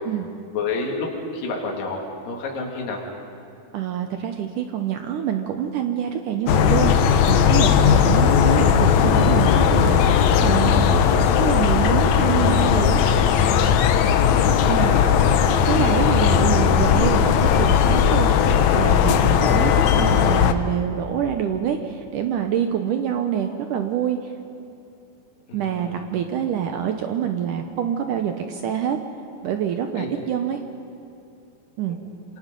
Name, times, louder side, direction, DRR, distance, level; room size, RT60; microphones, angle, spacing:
voice 1, 0.5-3.1 14.1-15.2 25.5-26.1 30.0-30.1, left 3 dB, 60° left, -1 dB, 4.0 m, -30 dB
voice 2, 3.7-10.9 11.4-13.0 14.7-14.9 15.7-24.3 25.5-29.0 29.4-30.6 31.8-32.0, right 9 dB, 75° right, 6 dB, 2.0 m, -26 dB
sound 1, 6.5-20.5, left 8 dB, 85° left, 1.5 m, -17 dB
27.0 x 26.0 x 5.3 m, 2.7 s
omnidirectional pair, 4.5 m